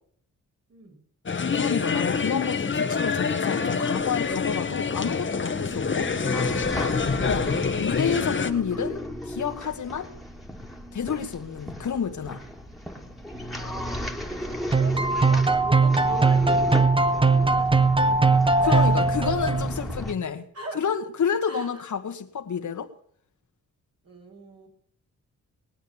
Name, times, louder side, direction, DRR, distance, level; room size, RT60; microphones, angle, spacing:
sound 1, 1.3-8.5, left 5 dB, 40° left, 1.5 m, -26 dB
voice 1, 1.5-6.1 7.2-7.5 7.8-10.1 10.9-12.4 18.7-20.5 20.7-22.9, left 7 dB, 65° left, 7 dB, 1.6 m, -29 dB
sound 2, 4.0-20.1, equal, ahead, 2.6 m, -36 dB
voice 2, 13.5-19.1 20.5-20.8 21.5-21.8 24.0-24.7, right 2 dB, 50° right, 0 dB, 6.9 m, -41 dB
sound 3, 14.7-19.9, right 3 dB, 15° right, 1.0 m, -20 dB
20.5 x 8.9 x 7.2 m, 0.62 s
cardioid pair, 85°, 31 cm